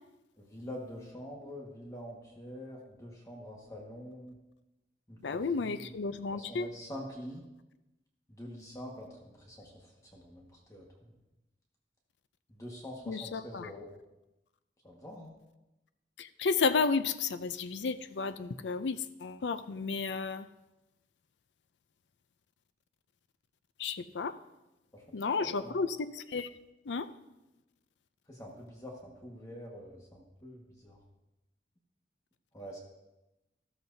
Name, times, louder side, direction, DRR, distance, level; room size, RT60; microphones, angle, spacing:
voice 1, 0.4-4.4 5.1-5.9 6.3-7.4 8.4-9.1 9.4-9.7 10.1-11.1 12.5-13.9 14.8-15.4 24.9-25.0 25.4-25.8 28.3-31.0 32.5-32.8, equal, 20° left, -1 dB, 1.6 m, -45 dB
voice 2, 5.2-6.7 13.1-13.7 16.2-20.5 23.8-24.4 25.1-26.5 26.9-27.1, left 4 dB, 80° left, 12 dB, 0.5 m, -32 dB
13.5 x 13.5 x 2.7 m, 0.99 s
head